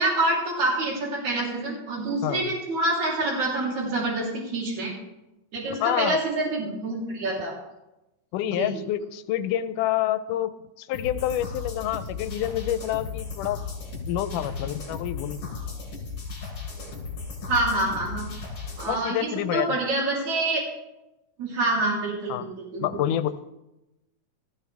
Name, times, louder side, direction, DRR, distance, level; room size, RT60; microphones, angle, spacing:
voice 1, 0.0-4.9 5.5-7.5 8.5-8.7 17.5-18.3 18.8-20.6 21.4-23.0, right 2 dB, 65° right, -4 dB, 4.8 m, -26 dB
voice 2, 5.7-6.2 8.3-13.6 14.1-15.6 18.9-19.8 22.3-22.5 22.8-23.3, left 12 dB, 90° left, 12 dB, 2.2 m, -28 dB
sound 1, 10.9-18.9, left 4 dB, 50° left, 4.9 m, -35 dB
18.5 x 14.0 x 3.5 m, 0.95 s
omnidirectional pair, 3.6 m